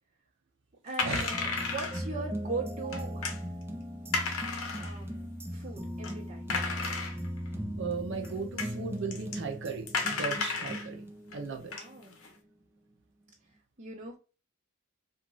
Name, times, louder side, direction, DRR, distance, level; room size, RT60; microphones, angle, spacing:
voice 1, 0.8-3.5 4.7-6.5 11.6-12.2 13.8-14.2, right 3 dB, 30° right, 1.0 m, -40 dB
sound 1, 0.9-2.1 2.9-3.4 4.1-5.0 5.6-5.7 6.0-6.1 6.5-7.5 8.2-8.3 8.6-8.7 9.1-9.4 9.9-10.9 11.3-11.4 11.7-12.3, left 4 dB, 85° left, 0.8 m, -33 dB
sound 2, 1.0-12.1 12.4-12.5, equal, 10° right, 0.3 m, -39 dB
voice 2, 7.8-11.0 11.3-11.7, right 4 dB, 60° right, 0.6 m, -36 dB
2.9 x 2.5 x 2.4 m
head